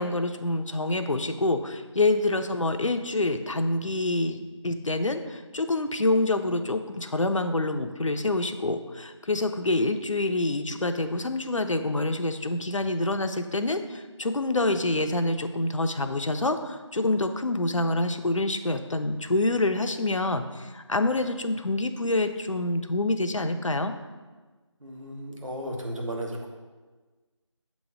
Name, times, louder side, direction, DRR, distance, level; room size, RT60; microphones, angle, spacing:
voice 1, 0.0-4.4 4.6-23.9, left 2 dB, 80° left, 8 dB, 0.6 m, -26 dB
voice 2, 24.8-26.5, right 1 dB, 85° right, -1 dB, 1.4 m, -34 dB
7.4 x 3.1 x 4.9 m, 1.3 s
figure-of-eight pair, 175°, 16 cm